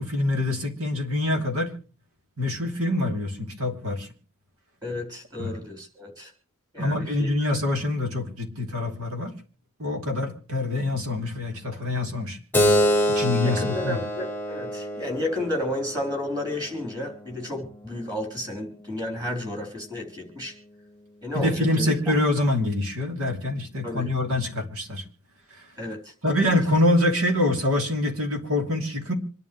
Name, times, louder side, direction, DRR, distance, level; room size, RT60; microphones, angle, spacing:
voice 1, 0.0-1.7 2.4-4.1 5.4-5.5 6.8-9.3 9.8-12.4 13.1-14.0 21.3-25.0 25.5-25.7 26.2-29.1, left 1 dB, 75° right, 4 dB, 2.9 m, -25 dB
voice 2, 4.8-6.3 6.7-7.3 13.4-20.5 21.2-22.1 23.8-24.1 25.8-26.1 26.4-26.6, left 1 dB, 20° right, 4 dB, 3.8 m, -32 dB
Keyboard (musical), 12.5-17.6, equal, 10° left, 1.2 m, -26 dB
26.0 x 11.0 x 3.1 m, 0.38 s
head